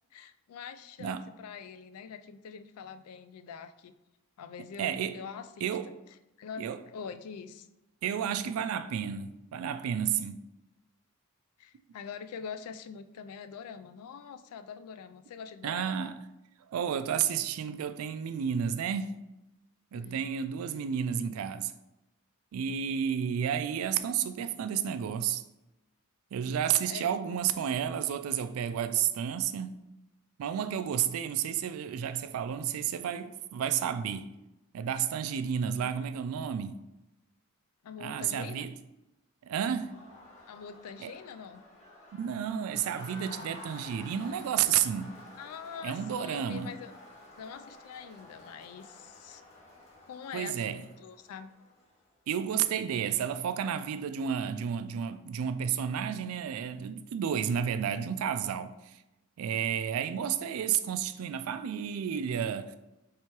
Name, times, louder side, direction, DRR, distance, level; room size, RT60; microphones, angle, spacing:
voice 1, 0.1-3.9 4.4-5.7 6.4-7.7 11.6-16.2 19.9-20.3 26.9-27.1 37.8-38.7 40.5-41.6 45.4-46.9 47.4-49.4 50.0-51.5, left 6 dB, 80° left, 0.3 m, -44 dB
voice 2, 4.8-5.2 5.6-5.9 6.6-6.8 8.0-10.5 15.6-16.1 16.7-19.2 19.9-21.7 22.5-25.4 26.3-29.7 30.4-34.3 34.7-36.8 38.0-38.7 39.4-39.9 41.0-41.1 42.1-45.1 45.8-46.7 50.3-50.8 52.3-59.0 59.4-62.8, right 8 dB, 70° right, 0.3 m, -31 dB
Crowd, 39.6-52.1, left 2 dB, 30° left, 1.2 m, -51 dB
3.3 x 2.9 x 4.5 m
head